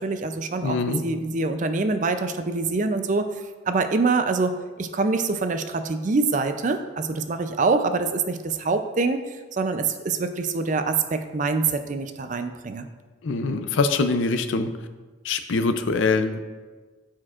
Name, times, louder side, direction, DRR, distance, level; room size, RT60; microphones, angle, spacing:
voice 1, 0.0-3.3 3.7-9.2 9.5-12.9, right 3 dB, 40° right, 8 dB, 0.4 m, -25 dB
voice 2, 0.6-1.0 13.2-14.7 15.2-16.4, left 3 dB, 75° left, 9 dB, 0.5 m, -23 dB
13.0 x 4.5 x 2.4 m, 1.3 s
head